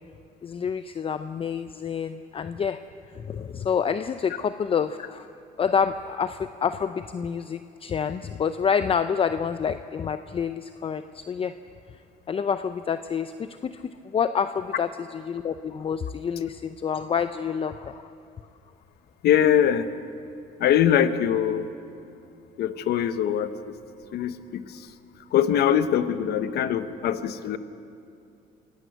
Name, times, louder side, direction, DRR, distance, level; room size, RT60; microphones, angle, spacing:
voice 1, 0.4-2.8 3.1-5.3 5.6-11.5 12.3-18.1, left 7 dB, 35° left, 11 dB, 0.6 m, -28 dB
voice 2, 19.2-19.9 20.6-21.7 22.6-23.7 24.1-24.9 25.3-27.6, left 9 dB, 70° left, 11 dB, 1.2 m, -23 dB
27.0 x 17.0 x 8.0 m, 2.5 s
cardioid pair, 110°, 17 cm